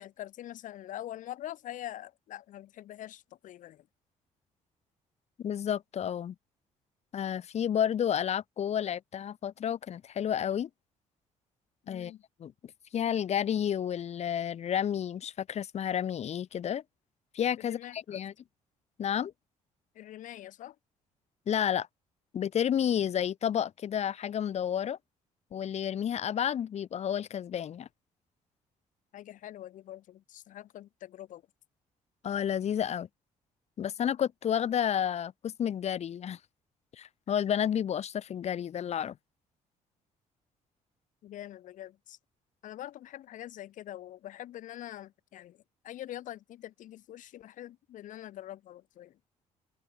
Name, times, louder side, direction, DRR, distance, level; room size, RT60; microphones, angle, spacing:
voice 1, 0.0-3.9 11.8-12.2 17.6-18.2 19.9-20.7 29.1-31.4 41.2-42.2 42.6-49.2, left 13 dB, 75° left, 3.2 m, -44 dB
voice 2, 5.4-6.3 7.1-10.7 11.9-12.1 12.4-12.5 12.9-16.8 17.3-18.3 19.0-19.3 21.5-21.9 22.3-25.0 25.5-27.9 32.2-33.1 33.8-36.4 36.9-39.1, left 9 dB, 55° left, 1.3 m, -31 dB
open air
cardioid pair, 90°, 13 cm